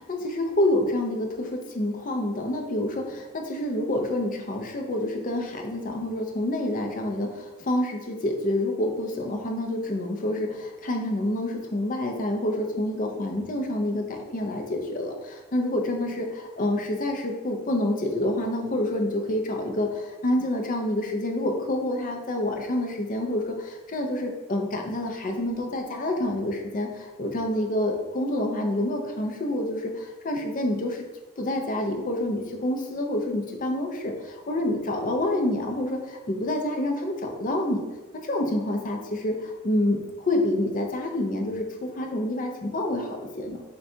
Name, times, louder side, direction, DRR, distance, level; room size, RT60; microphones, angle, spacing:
voice 1, 0.0-31.0 31.4-37.8 38.1-43.6, left 1 dB, 40° left, 3 dB, 0.5 m, -28 dB
6.3 x 2.3 x 2.6 m, 1.1 s
head